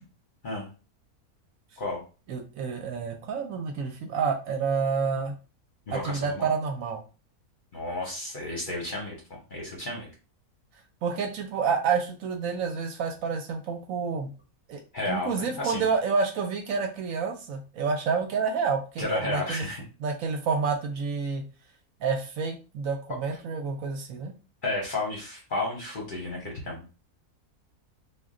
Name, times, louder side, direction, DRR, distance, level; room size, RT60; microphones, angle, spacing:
voice 1, 2.3-5.3 5.9-7.0 11.0-14.3 14.7-19.7 20.0-21.4 22.0-24.3, right 5 dB, 70° right, 4 dB, 0.9 m, -29 dB
voice 2, 5.9-6.5 7.7-10.1 14.9-15.9 19.0-19.8 24.6-26.8, left 2 dB, 45° left, -2 dB, 0.7 m, -32 dB
2.4 x 2.2 x 3.6 m, 0.34 s
omnidirectional pair, 1.6 m